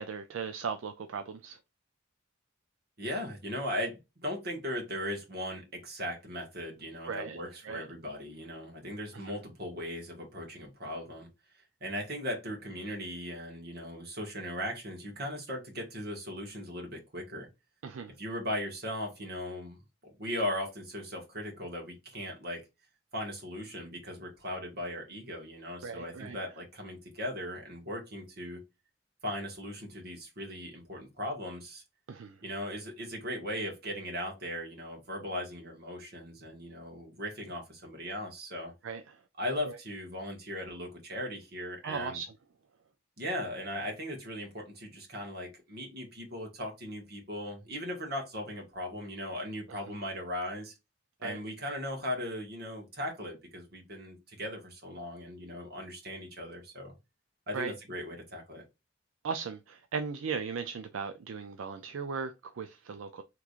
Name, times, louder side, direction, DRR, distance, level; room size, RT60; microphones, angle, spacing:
voice 1, 0.0-1.6 7.1-7.9 9.1-9.4 17.8-18.1 25.8-26.4 32.1-32.4 38.8-39.2 39.6-39.8 41.8-42.3 49.7-49.9 51.2-51.4 57.5-57.7 59.2-63.2, right 5 dB, 75° right, 0.4 m, -38 dB
voice 2, 3.0-11.3 11.8-17.5 18.2-19.8 20.2-22.6 23.1-28.6 29.2-31.8 32.4-38.7 39.4-42.2 43.2-50.7 51.2-56.9 57.5-58.6, equal, 55° right, 1.5 m, -38 dB
3.5 x 3.1 x 2.4 m
head